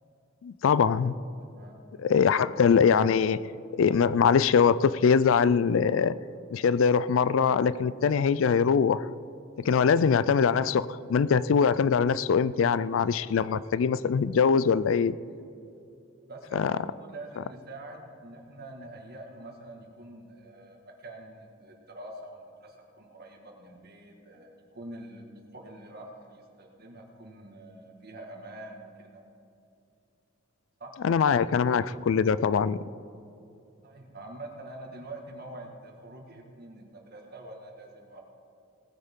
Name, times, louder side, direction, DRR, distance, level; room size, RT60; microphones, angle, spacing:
voice 1, 0.4-1.1 2.0-3.4 3.7-6.2 6.5-9.1 9.6-15.2 16.5-16.7 31.0-32.8, left 6 dB, 75° left, 17 dB, 0.4 m, -23 dB
voice 2, 1.4-1.8 9.7-9.8 16.3-25.3 25.5-29.2 30.8-30.9 33.8-38.2, right 1 dB, 50° right, 1 dB, 1.9 m, -45 dB
18.5 x 9.8 x 3.8 m, 2.7 s
head